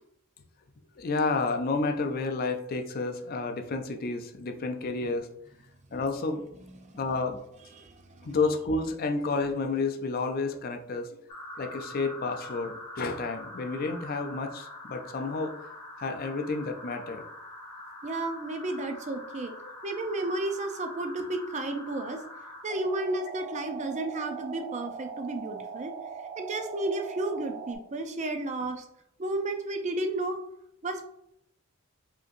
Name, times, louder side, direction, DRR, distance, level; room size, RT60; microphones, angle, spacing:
voice 1, 1.0-5.3 5.9-6.4 6.9-7.4 8.2-11.2 11.6-15.5 16.0-17.2, left 3 dB, 45° left, 6 dB, 0.4 m, -30 dB
voice 2, 7.8-8.3 18.0-19.5 19.8-22.2 22.6-25.9 26.4-28.8 29.2-30.4 30.8-31.0, right 2 dB, 35° right, 6 dB, 0.5 m, -32 dB
sound 1, 11.3-27.7, right 2 dB, 20° left, 1.2 m, -43 dB
4.9 x 2.9 x 2.5 m, 0.75 s
head